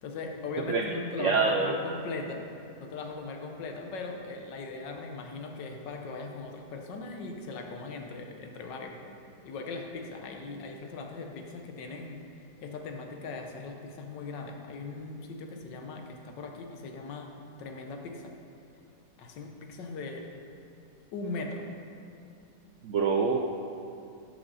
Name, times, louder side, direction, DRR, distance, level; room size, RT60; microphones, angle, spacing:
voice 1, 0.0-2.5 2.8-9.1 9.4-18.3 19.2-20.3 21.1-21.7, left 3 dB, 85° left, 3 dB, 1.6 m, -39 dB
voice 2, 1.2-1.7 22.8-23.4, right 5 dB, 75° right, 2 dB, 0.7 m, -25 dB
12.5 x 6.7 x 4.0 m, 2.6 s
omnidirectional pair, 1.9 m